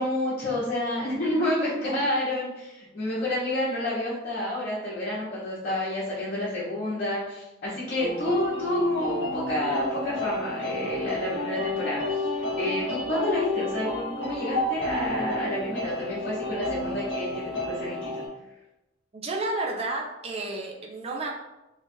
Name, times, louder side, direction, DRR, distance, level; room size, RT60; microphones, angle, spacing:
voice 1, 0.0-18.1, left 1 dB, 50° left, -8 dB, 1.0 m, -29 dB
sound 1, 8.0-18.3, left 1 dB, 70° left, 1.0 m, -30 dB
voice 2, 19.1-21.4, right 2 dB, 30° right, 0 dB, 0.5 m, -31 dB
3.0 x 2.4 x 4.2 m, 0.97 s
head